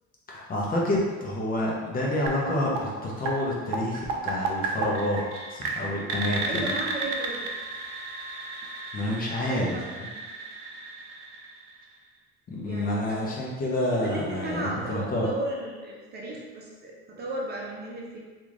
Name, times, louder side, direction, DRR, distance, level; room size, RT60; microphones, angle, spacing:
voice 1, 0.3-5.2 5.5-6.7 8.9-9.8 12.5-15.3, left 1 dB, 30° left, -4 dB, 0.7 m, -28 dB
sound 1, 2.3-12.1, right 3 dB, 80° right, 0.6 m, -34 dB
Wind instrument woodwind instrument, 4.4-9.0, left 5 dB, 85° left, 1.0 m, -50 dB
voice 2, 6.4-7.5 9.2-10.2 12.6-13.2 13.9-18.2, right 2 dB, 35° right, -3 dB, 0.6 m, -35 dB
3.4 x 2.5 x 3.0 m, 1.4 s
supercardioid pair, 115°, 30 cm